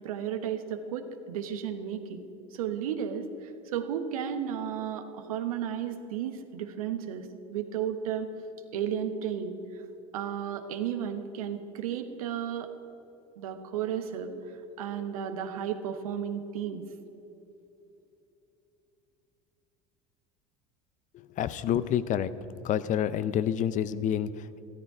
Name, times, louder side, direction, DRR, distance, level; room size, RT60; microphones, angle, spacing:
voice 1, 0.0-8.3 8.7-9.6 10.1-12.7 13.4-14.3 14.8-16.8, right 8 dB, 80° right, 8 dB, 1.1 m, -33 dB
voice 2, 21.1-22.3 22.6-24.6, left 10 dB, 45° left, 15 dB, 0.6 m, -28 dB
14.0 x 12.5 x 5.0 m, 3.0 s
hypercardioid pair, 80°, 18 cm